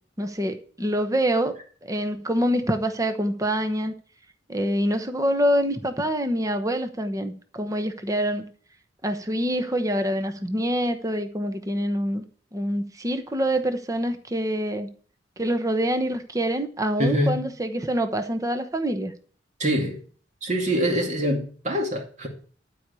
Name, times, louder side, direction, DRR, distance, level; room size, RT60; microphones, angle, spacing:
voice 1, 0.2-1.6 1.8-3.9 4.5-8.5 9.0-12.2 12.5-14.9 15.4-19.1, equal, 20° right, 1.0 m, -25 dB
voice 2, 17.0-17.4 19.6-20.0 20.4-22.3, equal, 40° right, 2.4 m, -24 dB
12.0 x 4.9 x 8.2 m
head